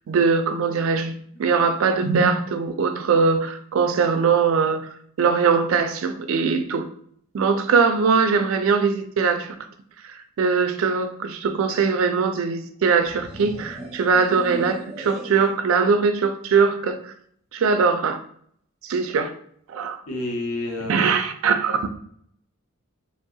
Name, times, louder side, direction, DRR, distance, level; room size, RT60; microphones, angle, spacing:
voice 1, 0.1-1.1 1.4-4.9 5.2-6.9 7.3-9.6 10.0-17.1 17.5-18.2 18.8-19.3 19.7-20.0 20.9-21.9, right 5 dB, 70° right, 8 dB, 0.3 m, -21 dB
sound 1, 13.0-15.6, right 1 dB, 5° right, 0.6 m, -37 dB
voice 2, 20.1-21.2, left 2 dB, 80° left, 1 dB, 0.7 m, -29 dB
3.3 x 2.7 x 2.3 m, 0.63 s
head